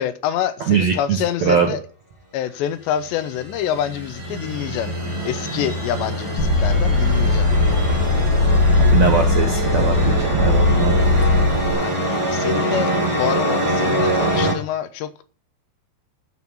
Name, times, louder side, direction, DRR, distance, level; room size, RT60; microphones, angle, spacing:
voice 1, 0.0-1.8 2.3-4.9 5.2-7.5 11.8-15.1, left 10 dB, 85° left, 3.1 m, -26 dB
voice 2, 0.7-1.7 8.8-11.0, right 7 dB, 70° right, 1.6 m, -21 dB
sound 1, 3.0-14.5, right 1 dB, 10° right, 1.8 m, -24 dB
sound 2, 6.4-11.7, left 3 dB, 40° left, 2.7 m, -18 dB
14.5 x 6.2 x 5.5 m
omnidirectional pair, 5.0 m